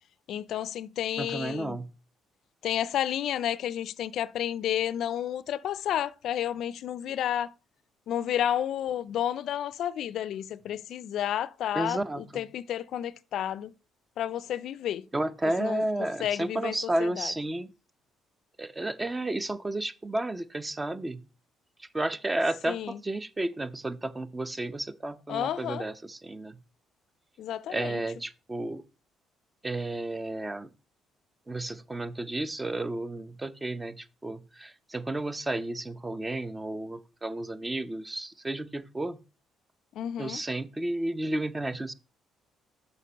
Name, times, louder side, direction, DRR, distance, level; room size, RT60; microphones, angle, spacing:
voice 1, 0.3-1.8 2.6-7.5 8.1-13.7 14.2-15.0 15.6-15.8 16.2-16.7 17.0-17.3 22.7-23.0 25.3-25.8 27.4-28.0 40.0-40.4, left 10 dB, 70° left, 0.4 m, -31 dB
voice 2, 1.2-1.9 11.7-12.4 15.1-17.7 18.6-21.2 21.8-26.6 27.7-28.8 29.6-30.7 31.5-39.2 40.2-41.9, right 1 dB, 20° right, 0.6 m, -32 dB
6.5 x 4.3 x 5.2 m
supercardioid pair, 70°, 0 cm